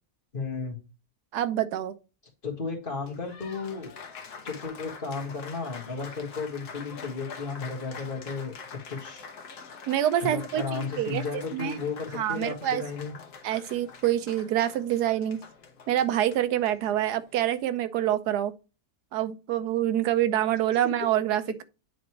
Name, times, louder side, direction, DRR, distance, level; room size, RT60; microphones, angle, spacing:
voice 1, 0.3-0.8 2.4-3.9 4.4-9.2 10.2-13.1, left 4 dB, 35° left, 2.0 m, -34 dB
voice 2, 1.3-2.0 9.9-11.3 11.5-11.8 12.1-12.8 13.4-15.4 15.9-18.5 19.1-21.6, right 12 dB, 85° right, 1.3 m, -26 dB
Applause, 2.9-17.6, left 5 dB, 80° left, 1.5 m, -45 dB
9.4 x 4.0 x 3.0 m
omnidirectional pair, 1.7 m